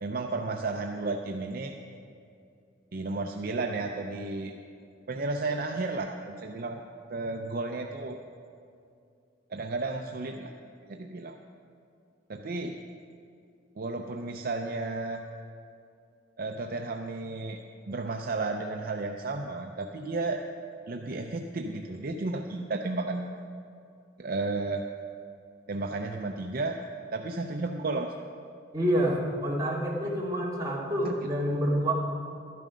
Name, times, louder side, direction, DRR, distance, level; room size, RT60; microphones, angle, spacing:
voice 1, 0.0-1.8 2.9-4.5 5.1-6.8 7.1-8.2 9.5-10.5 10.9-11.4 12.3-12.8 13.8-15.2 16.4-17.6 17.9-20.4 20.9-23.3 24.2-24.8 25.7-26.8 27.1-28.1 31.0-31.1, right 3 dB, 50° right, 3 dB, 0.6 m, -33 dB
voice 2, 28.7-31.9, equal, 20° right, -5 dB, 2.4 m, -28 dB
12.5 x 11.0 x 5.1 m, 2.4 s
head